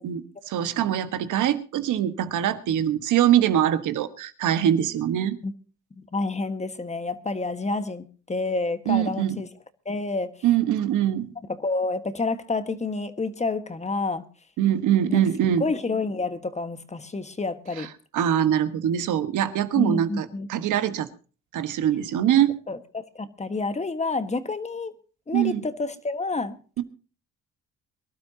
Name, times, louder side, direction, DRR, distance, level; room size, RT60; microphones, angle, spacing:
voice 1, 0.0-5.4 8.9-9.4 10.4-11.3 14.6-15.6 18.1-21.1 21.5-22.5 25.3-25.6 26.8-26.9, right 10 dB, 80° right, 1.5 m, -23 dB
voice 2, 6.1-9.5 9.8-10.3 11.5-14.2 15.1-15.2 15.6-17.9 19.7-20.5 22.7-24.9 25.3-26.8, left 3 dB, 20° left, 1.5 m, -29 dB
23.5 x 12.0 x 2.8 m
cardioid pair, 90°, 30 cm